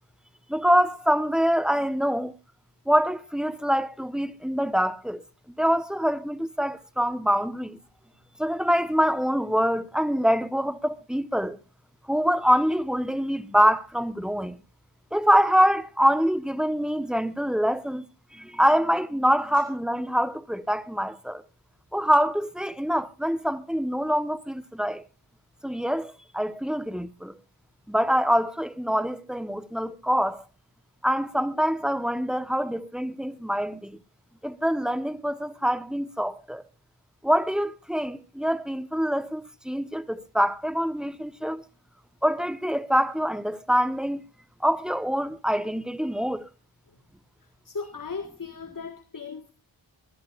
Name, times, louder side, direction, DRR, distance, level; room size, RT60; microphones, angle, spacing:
voice 1, 0.5-2.3 2.9-5.2 5.6-7.8 8.4-11.6 12.1-14.6 15.1-18.0 18.3-21.4 21.9-25.0 25.6-27.3 27.9-30.4 31.0-34.0 34.4-36.6 37.2-41.6 42.2-44.2 44.6-46.5, equal, ahead, 1.2 m, -25 dB
voice 2, 47.7-49.5, left 5 dB, 45° left, 1.8 m, -36 dB
24.5 x 13.5 x 2.5 m
cardioid pair, 50°, 47 cm